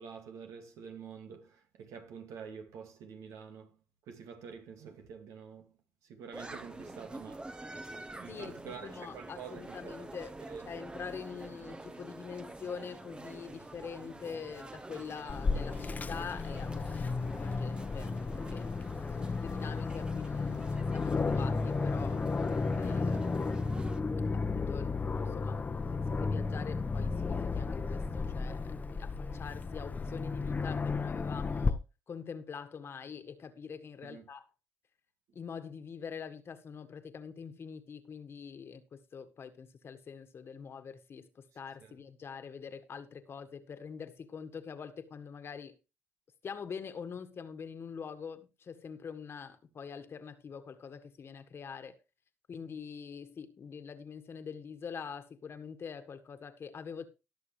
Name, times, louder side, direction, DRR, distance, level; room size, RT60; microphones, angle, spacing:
voice 1, 0.0-3.7 4.1-5.7 6.0-7.5 8.2-10.1 10.5-10.7 34.0-34.3 41.8-42.0, right 6 dB, 80° right, 2.2 m, -47 dB
sound 1, 6.3-24.0, right 2 dB, 15° right, 1.0 m, -47 dB
voice 2, 8.3-10.4 10.7-18.7 19.1-22.2 22.7-23.4 24.3-25.6 25.9-34.5 35.3-45.8 46.4-52.0 52.5-57.0, left 6 dB, 50° left, 1.6 m, -45 dB
Aircraft, 15.3-31.7, left 4 dB, 30° left, 1.0 m, -33 dB
18.5 x 6.6 x 3.3 m
cardioid pair, 80°, 5 cm